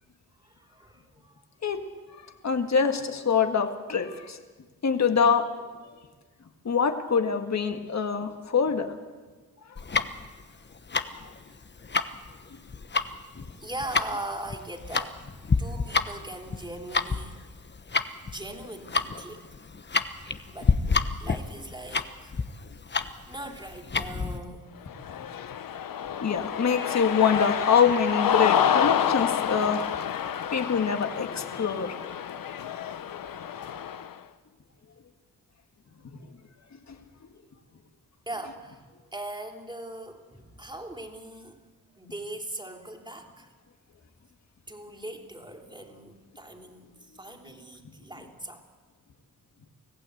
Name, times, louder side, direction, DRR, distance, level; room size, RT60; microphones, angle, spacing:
voice 1, 0.4-1.8 13.6-17.4 18.2-19.5 20.5-20.8 21.2-22.3 23.3-24.7 38.2-41.6 41.9-43.5 44.7-48.6, right 1 dB, 15° right, 3 dB, 3.3 m, -40 dB
voice 2, 2.4-4.4 4.8-5.5 5.8-5.9 6.7-8.9 26.2-29.8 30.5-32.0, left 6 dB, 50° left, 6 dB, 1.9 m, -24 dB
Tick-tock, 9.8-24.4, left 4 dB, 30° left, 1.1 m, -29 dB
Cheering, 24.9-34.1, left 9 dB, 70° left, 1.1 m, -28 dB
25.0 x 15.5 x 8.2 m, 1.4 s
cardioid pair, 65°, 35 cm